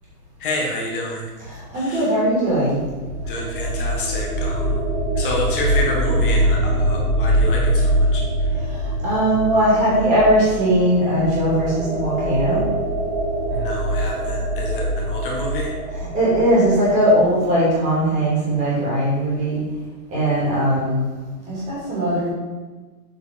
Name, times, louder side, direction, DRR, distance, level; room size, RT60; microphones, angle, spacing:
voice 1, 0.4-1.2 1.7-2.1 3.3-4.8 5.1-8.5 13.5-15.7, left 2 dB, 35° left, -2 dB, 1.6 m, -28 dB
voice 2, 1.7-2.8 9.0-12.6 16.1-19.6 20.1-21.0 21.5-22.3, right 1 dB, 15° right, -7 dB, 2.7 m, -19 dB
sound 1, 2.5-17.3, right 1 dB, 65° right, 2.1 m, -23 dB
7.8 x 4.7 x 5.2 m, 1.3 s
hypercardioid pair, 170°, 46 cm